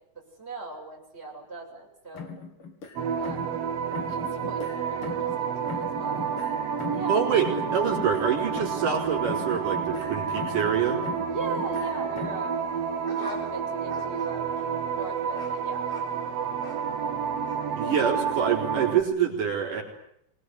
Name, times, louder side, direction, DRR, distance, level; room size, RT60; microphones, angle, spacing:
voice 1, 0.1-2.3 3.2-3.6 4.1-6.3 6.9-7.2 11.3-12.7 13.1-14.6 14.9-15.9, right 3 dB, 20° right, -1 dB, 7.2 m, -39 dB
sound 1, 2.1-3.6 3.9-5.4 5.7-9.0 9.2-10.7 11.0-12.5, left 5 dB, 45° left, 3.5 m, -40 dB
sound 2, 3.0-19.0, right 7 dB, 55° right, 2.5 m, -30 dB
voice 2, 7.1-7.5 7.7-11.0 17.7-19.8, right 7 dB, 85° right, 0 dB, 6.0 m, -26 dB
sound 3, 12.6-17.0 17.4-17.6, left 1 dB, 20° left, 6.3 m, -47 dB
25.5 x 21.0 x 9.6 m, 0.76 s
omnidirectional pair, 3.6 m